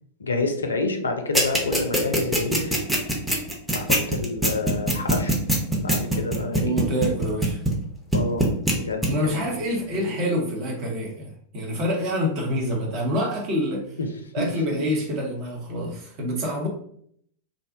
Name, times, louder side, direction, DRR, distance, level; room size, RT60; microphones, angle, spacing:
voice 1, 0.2-2.8 3.7-5.4 5.8-6.8 8.1-8.5 8.7-9.5 10.0-10.1 14.4-14.8, left 3 dB, 75° left, 5 dB, 0.3 m, -28 dB
sound 1, 1.3-7.8 8.1-8.7 9.0-9.1, right 1 dB, 5° right, 0.6 m, -21 dB
voice 2, 6.5-7.6 9.0-14.0 14.3-16.7, equal, 40° right, -1 dB, 0.8 m, -27 dB
2.5 x 2.1 x 2.6 m, 0.66 s
figure-of-eight pair, 90°, 0 cm